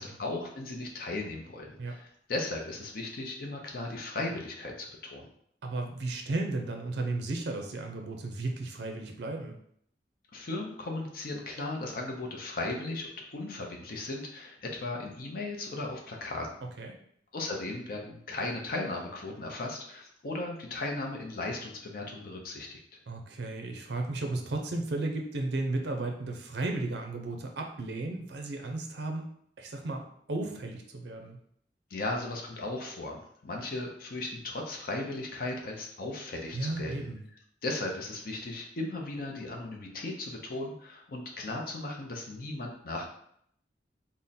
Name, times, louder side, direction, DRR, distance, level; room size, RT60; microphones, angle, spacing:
voice 1, 0.0-5.3 10.3-16.5 17.3-23.0 31.9-37.1 37.6-43.0, left 2 dB, 55° left, 1 dB, 0.6 m, -36 dB
voice 2, 5.6-9.5 16.8-17.0 23.1-29.3 29.6-31.4 36.5-37.2, right 2 dB, 70° right, 3 dB, 0.5 m, -34 dB
3.6 x 2.0 x 4.1 m, 0.68 s
head